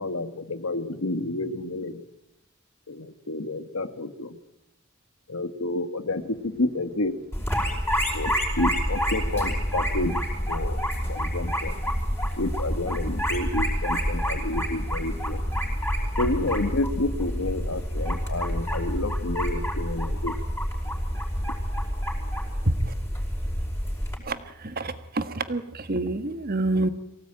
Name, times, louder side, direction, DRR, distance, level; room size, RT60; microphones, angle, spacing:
voice 1, 0.0-2.0 2.9-4.4 5.3-7.2 8.1-11.7 12.4-15.4 16.2-20.4, left 2 dB, 80° left, 11 dB, 1.6 m, -30 dB
sound 1, 7.3-24.2, equal, 10° left, 5.4 m, -28 dB
voice 2, 24.2-26.9, right 2 dB, 45° right, 11 dB, 1.5 m, -28 dB
23.5 x 17.5 x 8.9 m, 0.90 s
head